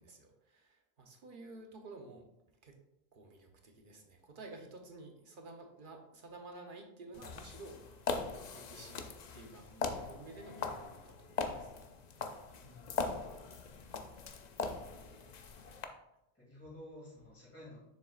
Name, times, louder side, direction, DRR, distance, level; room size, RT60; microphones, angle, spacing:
voice 1, 0.0-2.3 2.6-2.8 3.1-7.8 8.1-9.0 9.3-11.7 14.1-14.2 15.6-15.9, right 2 dB, 50° right, 3 dB, 1.1 m, -52 dB
sound 1, 7.1-15.8, left 4 dB, 50° left, 0.6 m, -41 dB
voice 2, 12.6-12.9 14.6-15.2 16.3-17.8, left 1 dB, 10° left, -6 dB, 2.5 m, -53 dB
7.0 x 6.7 x 2.5 m, 0.85 s
omnidirectional pair, 1.1 m